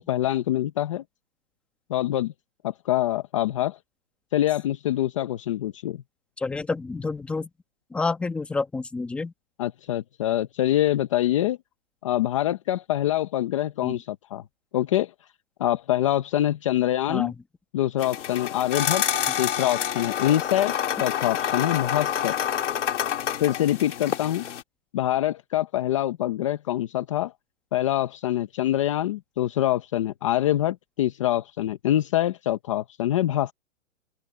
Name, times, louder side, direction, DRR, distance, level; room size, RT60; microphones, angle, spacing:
voice 1, 0.1-1.0 1.9-2.3 2.6-3.8 4.3-6.0 9.6-11.6 12.0-14.4 14.7-15.1 15.6-17.3 17.7-19.0 19.4-20.7 21.0-22.3 23.4-24.5 24.9-27.3 27.7-33.5, left 13 dB, 25° left, 0.7 m, -25 dB
voice 2, 6.4-7.5 7.9-9.3 13.8-14.0 17.1-17.4 19.3-19.4, left 3 dB, 5° left, 1.1 m, -29 dB
sound 1, 18.0-24.6, left 10 dB, 70° left, 3.0 m, -28 dB
open air
hypercardioid pair, 170°, 38 cm